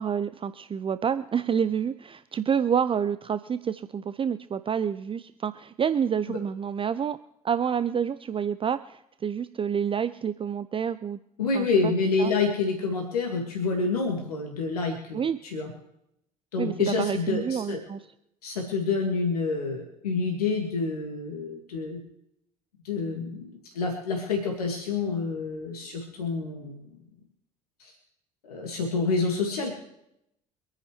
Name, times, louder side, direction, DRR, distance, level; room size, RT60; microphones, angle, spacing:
voice 1, 0.0-7.2 7.4-11.2 11.5-11.9 12.2-12.3 15.1-15.4 16.6-18.0, right 7 dB, 25° right, 13 dB, 0.6 m, -28 dB
voice 2, 11.4-15.7 16.5-17.8 18.4-22.0 22.8-27.0 27.8-27.9 28.4-29.7, left 4 dB, 75° left, 1 dB, 2.0 m, -28 dB
25.5 x 9.8 x 3.2 m, 0.81 s
figure-of-eight pair, 55°, 19 cm